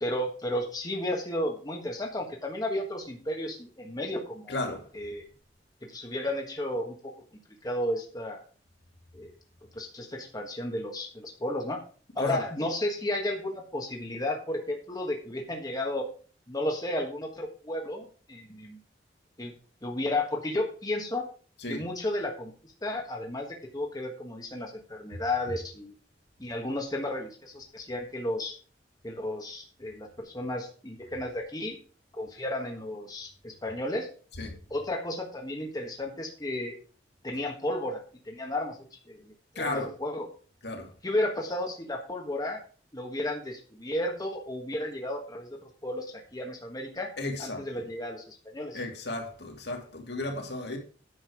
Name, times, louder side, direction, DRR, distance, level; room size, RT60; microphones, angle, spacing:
voice 1, 0.0-4.5 4.9-5.3 5.8-7.1 7.6-8.4 9.1-9.3 9.7-11.8 12.1-16.0 16.5-18.8 19.4-19.5 19.8-21.3 21.7-25.9 26.4-28.5 29.0-31.8 32.1-34.1 34.7-36.7 37.2-38.8 39.0-40.3 41.0-42.6 42.9-47.1 47.4-48.8, left 1 dB, 20° left, 1.5 m, -33 dB
voice 2, 4.5-4.9 12.2-12.4 21.6-21.8 34.4-34.6 39.6-39.9 40.6-40.9 47.2-47.6 48.7-50.8, left 2 dB, 65° left, 2.6 m, -34 dB
9.8 x 6.6 x 5.0 m
head